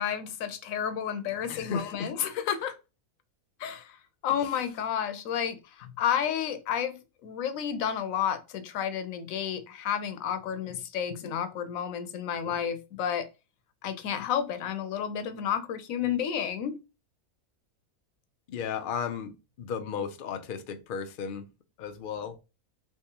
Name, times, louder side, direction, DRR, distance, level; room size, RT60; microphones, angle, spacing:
voice 1, 0.0-2.7 3.6-4.0 4.2-13.3 13.8-16.8, left 9 dB, 70° left, 1.0 m, -31 dB
voice 2, 1.5-2.4 4.4-4.5 18.5-21.4 21.8-22.4, left 6 dB, 90° left, 0.4 m, -35 dB
3.5 x 3.0 x 2.8 m
omnidirectional pair, 1.5 m